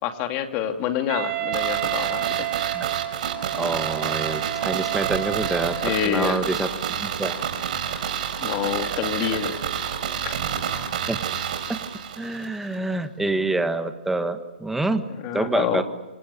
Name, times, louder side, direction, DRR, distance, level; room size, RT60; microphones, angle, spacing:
voice 1, 0.0-2.5 5.8-6.4 7.9-8.0 8.4-9.6 10.2-10.7 15.2-15.8, left 9 dB, 25° left, 6 dB, 2.6 m, -27 dB
Wind instrument woodwind instrument, 1.1-6.1, right 18 dB, 25° right, 1.8 m, -30 dB
sound 1, 1.5-12.5 12.7-12.8, right 8 dB, 50° right, 4.6 m, -29 dB
voice 2, 3.5-6.7 7.0-7.4 11.1-11.8 12.2-15.0 15.3-15.8, right 2 dB, 5° right, 8 dB, 1.5 m, -27 dB
27.0 x 27.0 x 7.0 m, 1.2 s
hypercardioid pair, 155°, 6 cm